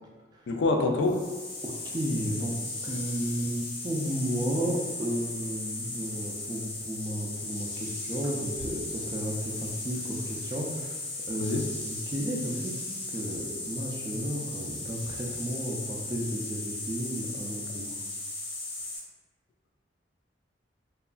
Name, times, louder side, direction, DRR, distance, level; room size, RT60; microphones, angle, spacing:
voice 1, 0.5-1.2 11.4-11.6, left 3 dB, 65° left, 4 dB, 0.3 m, -25 dB
sound 1, 1.0-19.0, left 2 dB, 85° left, 1.1 m, -37 dB
voice 2, 1.6-2.6 2.8-11.0 11.3-17.9, equal, 20° right, -1 dB, 0.3 m, -33 dB
2.8 x 2.4 x 2.3 m, 1.3 s
head